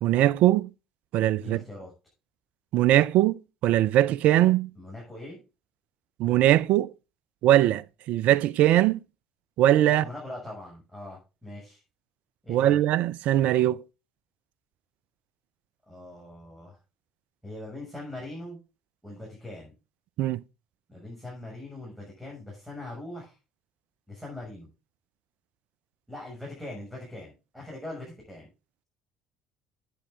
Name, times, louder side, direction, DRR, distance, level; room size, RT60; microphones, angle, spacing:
voice 1, 0.0-0.7 1.1-1.6 2.7-4.7 6.2-6.9 7.4-9.0 9.6-10.0 12.5-13.8 20.2-20.4, right 13 dB, 60° right, 0.5 m, -21 dB
voice 2, 1.3-1.9 4.7-5.4 9.9-11.8 12.4-12.8 15.9-16.8 17.4-18.6 19.0-19.7 20.9-23.3 24.1-24.7 26.1-28.5, left 1 dB, 5° right, 6.7 m, -41 dB
11.0 x 8.7 x 3.7 m
hypercardioid pair, 60°, 3 cm